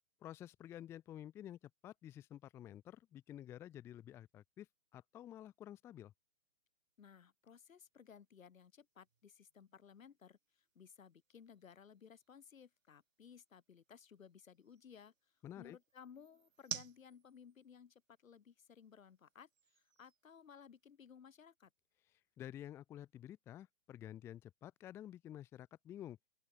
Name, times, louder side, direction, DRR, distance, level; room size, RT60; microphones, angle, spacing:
voice 1, 0.2-4.7 4.9-6.1 15.4-15.8 22.4-26.2, left 11 dB, 5° left, 0.8 m, -51 dB
sound 1, 6.9-21.1, right 7 dB, 70° right, 5.9 m, -56 dB
voice 2, 7.0-15.1 15.6-21.7, left 7 dB, 75° left, 5.2 m, -59 dB
open air
hypercardioid pair, 165°, 41 cm